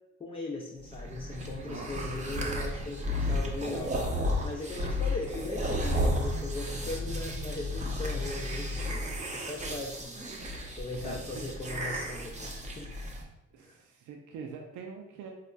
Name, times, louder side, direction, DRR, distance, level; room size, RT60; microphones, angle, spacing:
voice 1, 0.2-10.2 10.5-12.9 13.6-13.8, left 2 dB, 20° left, 0 dB, 0.4 m, -39 dB
sound 1, 0.8-13.2, left 1 dB, 25° right, 0.6 m, -33 dB
voice 2, 1.7-2.1 11.0-11.2 13.5-15.3, right 5 dB, 85° right, 1 dB, 0.5 m, -44 dB
3.9 x 2.4 x 2.2 m, 0.91 s
cardioid pair, 90°, 30 cm